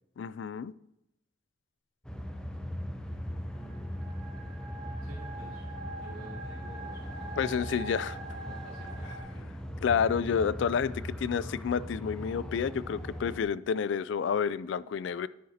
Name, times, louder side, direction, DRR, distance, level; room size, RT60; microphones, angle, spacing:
voice 1, 0.2-0.7 7.4-8.2 9.8-15.3, left 7 dB, 65° left, 18 dB, 0.3 m, -29 dB
sound 1, 2.0-13.4, equal, 5° left, 0.6 m, -39 dB
sound 2, 3.4-9.2, right 2 dB, 15° right, 2.5 m, -44 dB
voice 2, 3.5-4.2 5.0-9.5, right 1 dB, 85° right, -7 dB, 2.2 m, -52 dB
9.6 x 9.5 x 2.8 m, 0.87 s
head